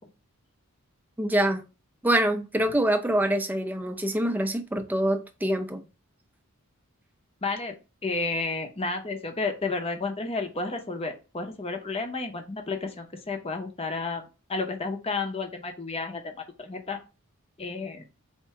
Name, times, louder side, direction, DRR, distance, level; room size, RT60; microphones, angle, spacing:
voice 1, 1.2-1.6 2.0-5.8, right 1 dB, 10° right, 0.5 m, -25 dB
voice 2, 7.4-17.0 17.6-18.0, left 3 dB, 25° left, 0.7 m, -32 dB
4.3 x 2.6 x 4.7 m
head